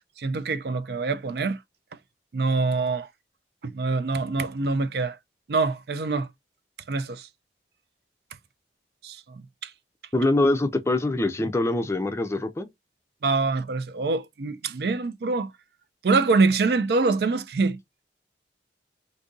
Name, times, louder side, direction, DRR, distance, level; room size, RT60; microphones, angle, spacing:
voice 1, 0.0-1.6 2.3-3.1 3.6-5.2 5.5-6.3 6.9-7.3 9.0-9.7 13.2-15.5 16.0-17.8, right 3 dB, 60° right, 0.4 m, -25 dB
voice 2, 10.1-12.7, left 2 dB, 15° left, 0.5 m, -24 dB
2.6 x 2.6 x 3.7 m
head